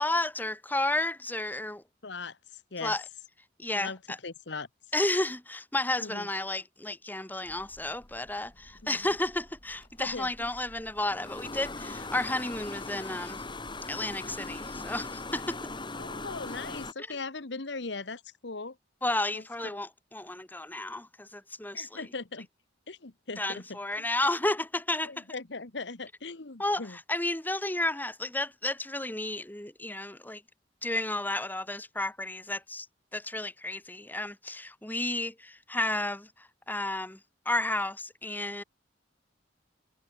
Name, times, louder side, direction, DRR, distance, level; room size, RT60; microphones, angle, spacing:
voice 1, 0.0-1.8 2.8-3.0 3.6-4.2 4.9-13.4 13.9-15.6 17.1-17.2 19.0-22.0 23.4-25.2 26.6-30.4 30.8-32.9 33.1-37.2 37.5-38.6, left 2 dB, 10° left, 1.9 m, -32 dB
voice 2, 2.0-2.4 2.7-2.9 3.7-4.0 4.2-4.7 6.0-6.3 8.8-8.9 10.0-10.5 16.0-18.7 19.3-19.4 21.7-22.5 22.9-24.1 25.0-27.0, left 3 dB, 65° left, 1.4 m, -39 dB
sound 1, 7.5-16.9, left 3 dB, 25° left, 3.2 m, -41 dB
head